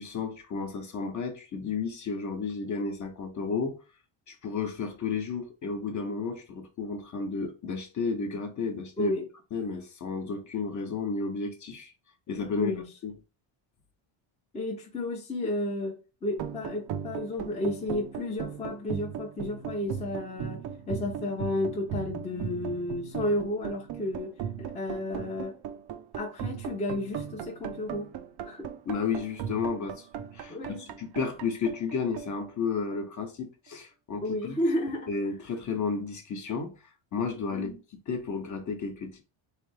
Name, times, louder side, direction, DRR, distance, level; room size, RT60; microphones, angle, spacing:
voice 1, 0.0-3.8 4.3-9.1 9.5-11.9 12.3-12.7 13.0-13.1 28.9-30.1 30.3-34.6 35.1-37.7 38.1-39.2, left 5 dB, 35° left, 0.9 m, -32 dB
voice 2, 9.0-9.3 12.6-12.9 14.5-24.3 24.6-25.6 26.1-28.1 28.4-28.7 30.5-30.8 34.2-35.1 37.5-37.7, left 1 dB, 15° left, 0.7 m, -32 dB
sound 1, 16.3-33.2, right 8 dB, 50° right, 0.6 m, -38 dB
3.8 x 3.3 x 3.2 m
cardioid pair, 175°, 49 cm